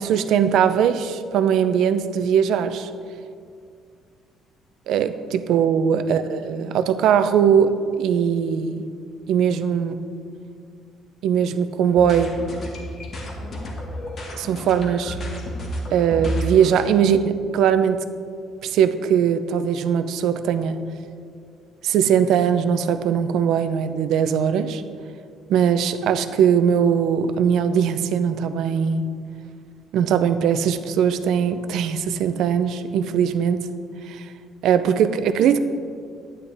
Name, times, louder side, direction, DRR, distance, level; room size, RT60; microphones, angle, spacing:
voice 1, 0.0-2.9 4.9-8.9 9.3-10.1 11.2-12.3 14.4-15.2 15.9-18.0 18.6-20.8 21.8-24.8 25.5-29.1 29.9-33.7 34.1-34.2 34.6-35.6, right 8 dB, 70° right, 10 dB, 0.6 m, -20 dB
sound 1, 11.9-16.8, equal, 40° left, 1.7 m, -31 dB
12.0 x 9.9 x 3.5 m, 2.2 s
cardioid pair, 150°, 0 cm